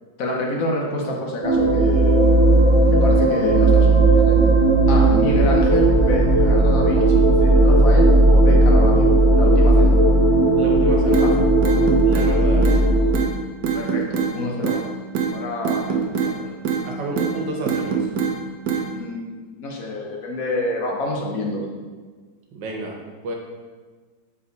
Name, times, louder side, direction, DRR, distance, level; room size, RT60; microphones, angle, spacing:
voice 1, 0.2-2.4 2.9-4.5 4.9-9.9 11.0-11.4 13.7-14.9 15.3-16.5 18.9-21.6, left 1 dB, 55° left, -1 dB, 1.4 m, -28 dB
sound 1, 1.4-13.1, right 2 dB, 35° right, 0.5 m, -15 dB
voice 2, 10.6-11.5 12.0-13.0 16.8-18.1 22.5-23.4, right 2 dB, 90° right, 1 dB, 1.7 m, -30 dB
sound 2, 11.1-11.3 11.6-12.3 12.6-12.8 13.1-13.3 13.6-14.3 14.6-14.8 15.1-15.3 15.6-16.3 16.6-16.8 17.2-17.3 17.7-18.3 18.7-18.9, right 7 dB, 70° right, 1.3 m, -23 dB
6.5 x 4.3 x 4.0 m, 1.4 s
omnidirectional pair, 1.9 m